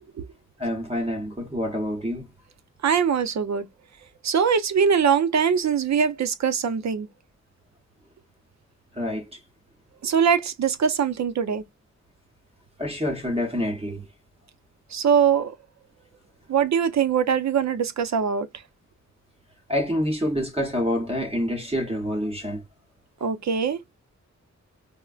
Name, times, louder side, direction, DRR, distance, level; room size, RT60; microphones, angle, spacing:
voice 1, 0.6-2.3 8.9-9.4 12.8-14.1 19.7-22.6, equal, 20° right, 0.8 m, -27 dB
voice 2, 2.8-3.7 4.2-7.1 10.0-11.6 14.9-15.5 16.5-18.5 23.2-23.8, right 7 dB, 70° right, 0.6 m, -22 dB
4.3 x 2.1 x 2.3 m
wide cardioid pair, 180°, 29 cm